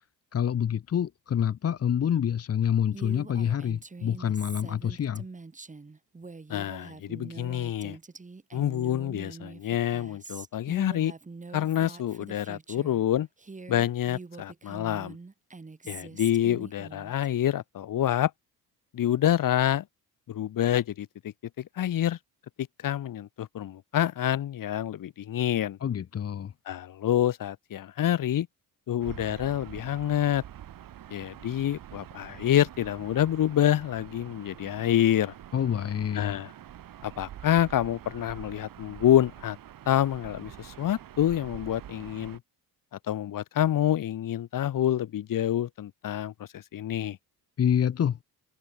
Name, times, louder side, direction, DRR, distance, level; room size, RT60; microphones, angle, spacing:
voice 1, 0.3-5.2 25.8-26.5 35.5-36.4 47.6-48.2, left 9 dB, 40° left, 1.3 m, -27 dB
Female speech woman speaking, 2.9-13.0 13.4-17.3, right 3 dB, 20° right, 8.0 m, -44 dB
voice 2, 6.5-8.0 8.5-11.1 11.5-13.3 13.7-15.2 15.9-18.3 18.9-19.8 20.3-22.2 22.6-25.8 26.7-28.5 28.9-30.4 31.1-35.3 36.1-36.5 37.0-39.6 39.9-42.4 43.1-47.2, left 11 dB, 55° left, 2.6 m, -27 dB
Gull seagull / Ocean, 29.0-42.4, right 11 dB, 60° right, 5.0 m, -46 dB
cardioid pair, 130°, 39 cm